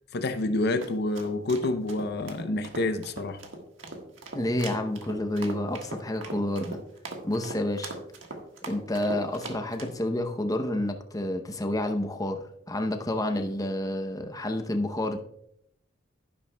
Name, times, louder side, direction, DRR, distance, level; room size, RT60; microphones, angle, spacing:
voice 1, 0.1-3.4, left 2 dB, 55° left, 0.6 m, -28 dB
sound 1, 0.5-10.0, right 2 dB, 80° right, 1.5 m, -40 dB
voice 2, 4.3-6.8 7.2-7.9 8.7-15.2, left 1 dB, 20° left, 0.7 m, -29 dB
11.5 x 10.5 x 2.2 m
head